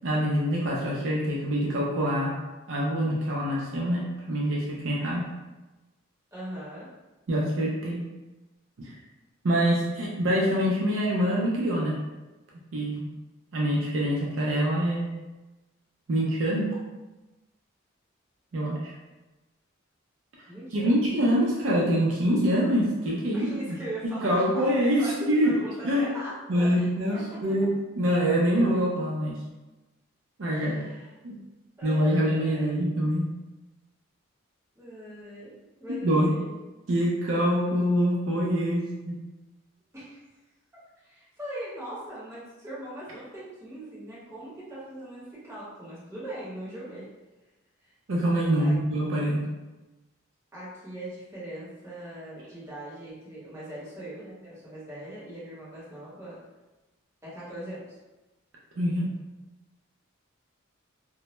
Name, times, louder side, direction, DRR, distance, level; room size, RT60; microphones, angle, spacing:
voice 1, 0.0-2.4 2.7-5.2 7.3-8.1 8.8-9.0 9.4-12.0 12.7-13.1 13.5-15.1 16.1-16.7 18.5-18.9 20.7-23.5 24.2-25.6 25.8-26.1 26.5-29.4 30.4-30.8 31.2-31.4 31.8-33.3 36.0-36.3 36.9-39.2 48.1-49.4 58.8-59.1, equal, 65° right, -3 dB, 0.4 m, -25 dB
voice 2, 6.3-6.9 20.5-21.1 23.3-27.7 30.5-31.1 31.8-32.7 34.8-35.5 35.8-36.6 39.9-40.2 41.0-47.1 47.8-47.9 48.6-48.7 50.5-56.4 57.2-57.8, right 1 dB, 15° right, -11 dB, 0.9 m, -40 dB
2.1 x 2.0 x 2.9 m, 1.1 s
head